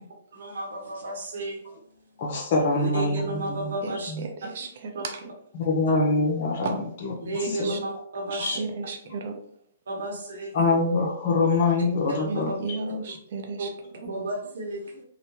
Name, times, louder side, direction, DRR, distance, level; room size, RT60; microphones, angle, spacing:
voice 1, 0.3-1.6 2.7-4.1 4.9-5.0 7.2-8.6 9.9-10.5 12.1-12.6 13.6-13.7 14.0-15.0, right 1 dB, 75° right, -2 dB, 1.1 m, -32 dB
voice 2, 2.2-3.7 4.1-4.2 5.6-6.8 7.0-7.7 8.4-8.6 10.5-12.5, left 3 dB, 50° left, -1 dB, 0.6 m, -24 dB
voice 3, 3.8-5.3 6.6-6.8 7.4-7.8 8.3-9.4 12.3-13.7 14.0-14.1, right 3 dB, 60° right, 3 dB, 0.6 m, -34 dB
2.9 x 2.1 x 2.7 m, 0.65 s
hypercardioid pair, 140°, 0 cm